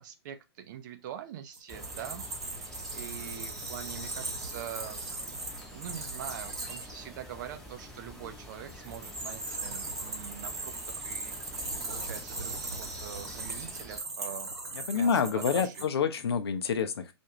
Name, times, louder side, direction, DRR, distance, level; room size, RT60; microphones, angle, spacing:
voice 1, 0.0-5.4 5.7-14.5 14.9-15.9, right 10 dB, 45° right, 0.5 m, -44 dB
sound 1, 1.5-6.9 8.7-15.9, right 3 dB, 75° right, 1.0 m, -39 dB
sound 2, 1.7-14.0, equal, 5° left, 0.7 m, -46 dB
voice 2, 14.9-17.1, left 6 dB, 65° left, 0.5 m, -27 dB
2.5 x 2.2 x 2.9 m
figure-of-eight pair, 115°, 14 cm